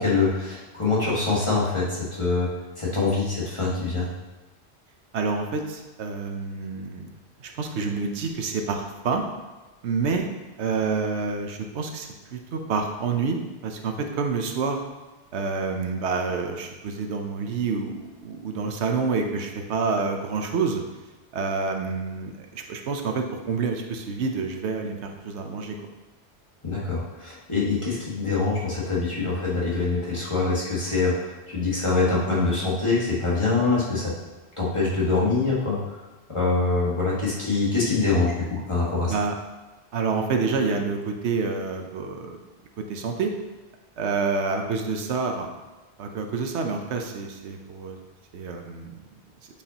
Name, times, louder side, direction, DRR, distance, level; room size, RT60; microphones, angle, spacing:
voice 1, 0.0-2.5 2.8-4.1 26.6-34.2 34.6-35.8 36.3-39.1, left 3 dB, 25° left, -7 dB, 1.7 m, -24 dB
voice 2, 5.1-7.1 7.4-9.2 9.8-10.3 10.6-14.8 15.3-20.8 21.3-25.8 39.1-39.4 39.9-42.4 42.9-43.3 44.0-45.5 46.0-48.0 48.3-49.0, right 4 dB, 85° right, 4 dB, 1.0 m, -28 dB
8.2 x 5.2 x 2.8 m, 1.2 s
omnidirectional pair, 1.1 m